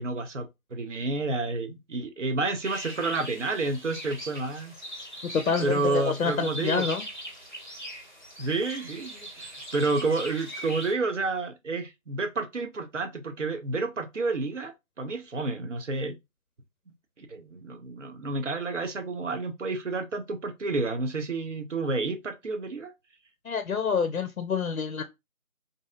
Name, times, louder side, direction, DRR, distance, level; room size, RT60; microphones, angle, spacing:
voice 1, 0.0-4.7 5.6-6.8 8.4-16.2 17.2-22.9, right 3 dB, 60° right, 0.6 m, -30 dB
sound 1, 2.6-10.9, right 1 dB, 35° left, 0.6 m, -40 dB
voice 2, 5.2-7.0 23.4-25.0, left 5 dB, 75° left, 0.5 m, -27 dB
2.6 x 2.6 x 2.3 m
figure-of-eight pair, 165°, 42 cm